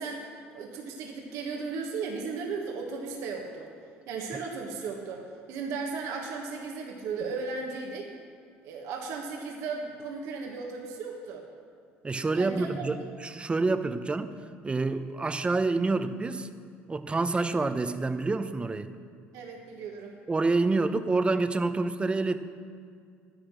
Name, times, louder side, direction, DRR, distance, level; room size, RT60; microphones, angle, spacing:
voice 1, 0.0-3.7 4.1-8.1 8.6-11.4 12.3-12.8 19.3-20.2, right 4 dB, 70° right, 1 dB, 1.5 m, -36 dB
voice 2, 12.0-14.3 14.6-16.5 16.9-18.9 20.3-22.4, right 3 dB, 20° right, 10 dB, 0.8 m, -27 dB
12.0 x 10.0 x 6.2 m, 2.2 s
supercardioid pair, 75°, 5 cm